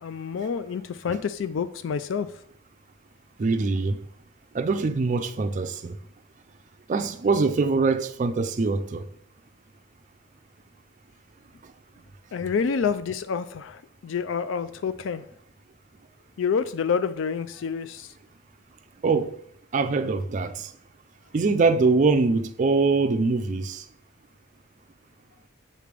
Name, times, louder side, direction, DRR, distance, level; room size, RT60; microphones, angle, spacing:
voice 1, 0.0-2.3 12.3-15.2 16.4-18.1, left 6 dB, 65° left, 0.4 m, -28 dB
voice 2, 3.4-4.0 4.5-6.0 6.9-9.0 19.0-19.3 19.7-20.7 21.3-23.9, right 4 dB, 35° right, 0.4 m, -23 dB
7.5 x 3.3 x 5.1 m
head